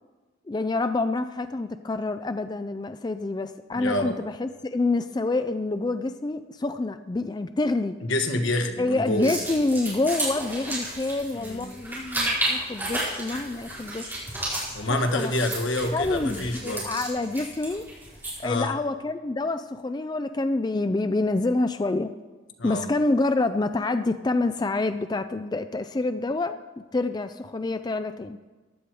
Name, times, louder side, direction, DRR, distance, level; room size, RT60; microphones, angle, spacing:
voice 1, 0.5-8.0 8.8-14.2 14.8-15.3 15.9-17.9 18.4-22.1 22.6-26.6 26.9-28.4, left 2 dB, 20° left, 10 dB, 0.3 m, -27 dB
voice 2, 3.7-4.2 8.0-9.4 11.3-11.7 14.7-16.9 18.4-18.7 22.6-22.9, left 1 dB, 85° left, 5 dB, 1.4 m, -27 dB
sound 1, 9.1-18.5, right 1 dB, 10° right, 4.4 m, -32 dB
15.0 x 10.5 x 4.7 m, 1.3 s
head